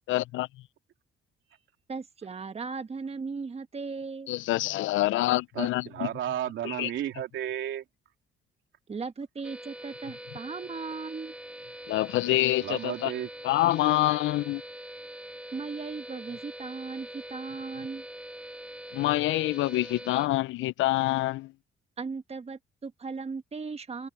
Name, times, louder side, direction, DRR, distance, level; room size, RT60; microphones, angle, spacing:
voice 1, 0.1-0.5 4.3-6.1 6.6-6.9 11.9-13.1 13.4-14.6 18.9-21.5, left 16 dB, 75° left, 0.4 m, -26 dB
voice 2, 1.9-4.3 8.9-11.3 15.5-18.0 22.0-24.1, right 4 dB, 30° right, 1.4 m, -37 dB
voice 3, 5.5-7.8 12.6-13.3, right 11 dB, 75° right, 3.1 m, -33 dB
sound 1, 9.4-20.3, right 1 dB, 5° right, 7.5 m, -43 dB
cardioid pair, 90°, 20 cm